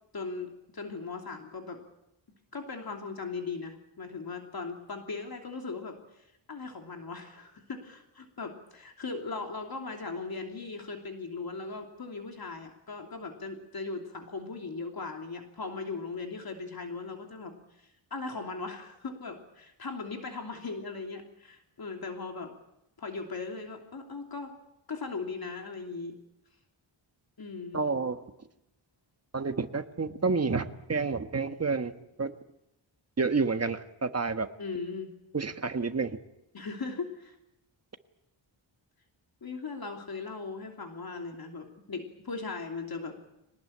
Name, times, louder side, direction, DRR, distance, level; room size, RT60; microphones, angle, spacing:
voice 1, 0.1-1.8 2.5-22.5 23.0-24.5 24.9-26.2 27.4-27.8 34.6-35.1 36.5-37.4 39.4-43.2, left 4 dB, 50° left, 3 dB, 3.0 m, -38 dB
voice 2, 27.7-28.2 29.3-31.9 32.2-32.3 33.2-34.5 35.3-36.2, right 4 dB, 30° right, 8 dB, 1.5 m, -29 dB
24.0 x 19.5 x 8.6 m, 0.85 s
wide cardioid pair, 105°, 47 cm